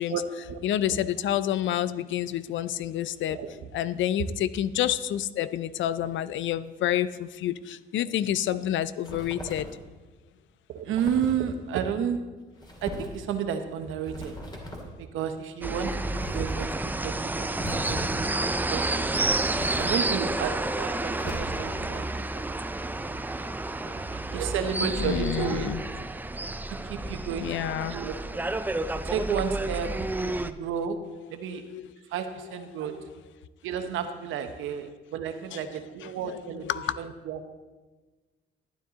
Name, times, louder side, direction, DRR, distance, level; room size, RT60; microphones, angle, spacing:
voice 1, 0.1-0.6 0.9-1.0 3.3-3.5 10.7-12.2 12.8-14.3 14.8-19.2 19.8-22.4 23.9-25.7 26.7-27.5 27.9-28.1 29.0-29.9 30.2-31.0 31.3-31.6 32.1-33.0 33.6-36.7 37.0-37.5, right 7 dB, 90° right, 0.9 m, -32 dB
voice 2, 0.6-3.4 3.7-9.7 24.8-25.8 27.4-28.0 31.7-31.8 35.5-35.6 36.2-37.0, left 11 dB, 75° left, 0.5 m, -28 dB
sound 1, 9.0-9.8 11.0-11.4 12.6-13.2 14.1-14.9 16.1-16.7 17.6-18.3 19.5-20.2 21.1-21.9, equal, 20° left, 2.4 m, -38 dB
sound 2, 15.6-30.5, right 2 dB, 10° right, 0.4 m, -30 dB
12.0 x 9.4 x 4.0 m
cardioid pair, 90°, 20 cm